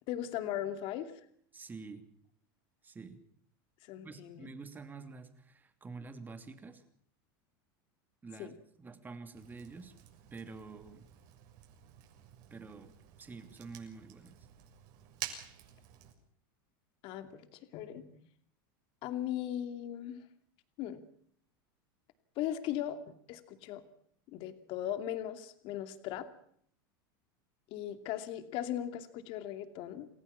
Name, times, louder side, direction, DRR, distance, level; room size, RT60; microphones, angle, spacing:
voice 1, 0.1-1.1 3.9-4.5 8.4-8.5 17.0-18.2 19.0-20.2 20.8-21.0 22.4-23.8 24.3-26.3 27.7-30.1, left 11 dB, 50° left, 9 dB, 2.6 m, -38 dB
voice 2, 1.5-2.1 2.8-3.2 4.0-6.8 8.2-9.9 10.3-11.1 12.5-12.9 13.2-14.4, right 4 dB, 15° right, 8 dB, 2.9 m, -48 dB
Fire, 9.3-16.1, right 12 dB, 60° right, 6.8 m, -50 dB
28.5 x 15.5 x 7.2 m, 0.63 s
supercardioid pair, 135°, 12 cm